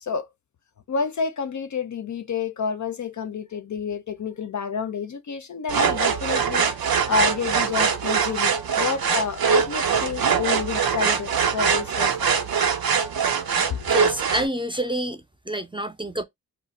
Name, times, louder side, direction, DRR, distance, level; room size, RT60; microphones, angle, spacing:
voice 1, 0.9-6.7 7.1-12.3 13.7-13.8, left 6 dB, 55° left, 0.5 m, -29 dB
sound 1, 5.7-14.5, right 6 dB, 85° right, 0.6 m, -23 dB
voice 2, 13.9-16.2, right 1 dB, 15° right, 0.5 m, -28 dB
2.4 x 2.1 x 3.9 m
wide cardioid pair, 65°, 35 cm